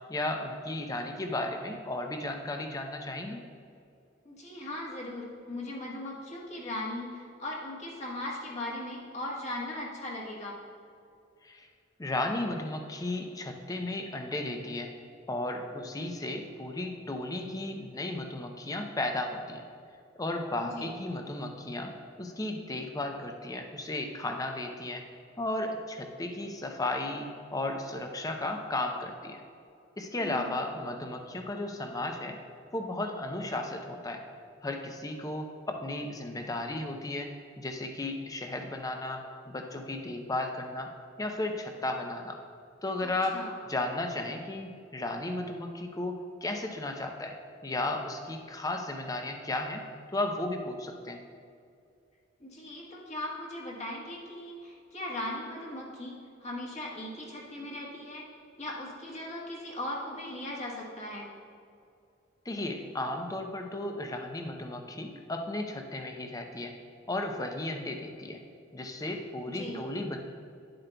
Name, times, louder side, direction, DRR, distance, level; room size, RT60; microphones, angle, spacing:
voice 1, 0.1-3.4 11.4-11.7 12.0-14.9 15.3-19.6 20.2-25.0 25.4-29.4 30.0-32.4 32.7-34.2 34.6-40.9 41.2-42.4 42.8-43.4 43.7-47.4 47.6-49.8 50.1-51.2 62.5-66.7 67.1-68.4 68.7-70.2, left 2 dB, 20° left, 4 dB, 0.6 m, -34 dB
voice 2, 4.2-10.6 20.6-20.9 30.2-30.5 43.0-43.5 52.4-58.3 58.6-61.3 69.5-69.8, left 1 dB, 35° left, -3 dB, 1.3 m, -38 dB
10.5 x 7.6 x 2.3 m, 2.4 s
head